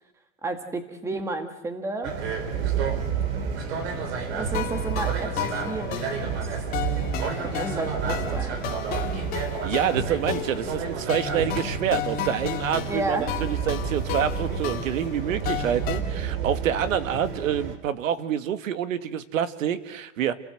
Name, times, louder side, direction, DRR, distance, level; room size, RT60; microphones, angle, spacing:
voice 1, 0.4-2.1 4.3-6.3 7.4-8.6 12.8-13.3, right 2 dB, 5° right, 7 dB, 1.6 m, -32 dB
sound 1, 2.0-17.8, right 6 dB, 55° right, 3.9 m, -30 dB
sound 2, 4.5-16.0, left 8 dB, 20° left, 2.0 m, -33 dB
voice 2, 9.6-20.3, right 9 dB, 80° right, 11 dB, 2.0 m, -27 dB
29.5 x 18.5 x 7.8 m, 0.89 s
supercardioid pair, 175°, 39 cm